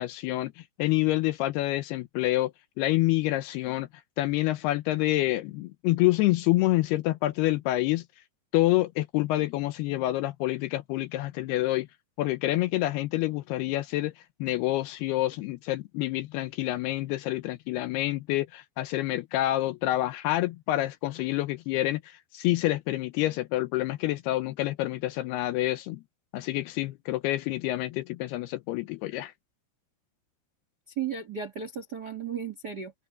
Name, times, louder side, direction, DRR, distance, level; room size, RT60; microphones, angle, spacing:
voice 1, 0.0-2.5 2.8-3.9 4.2-8.0 8.5-11.9 12.2-14.1 14.4-26.0 26.3-29.3, left 16 dB, 80° left, 2.5 m, -27 dB
voice 2, 30.9-32.9, right 7 dB, 90° right, 0.9 m, -34 dB
omnidirectional pair, 5.0 m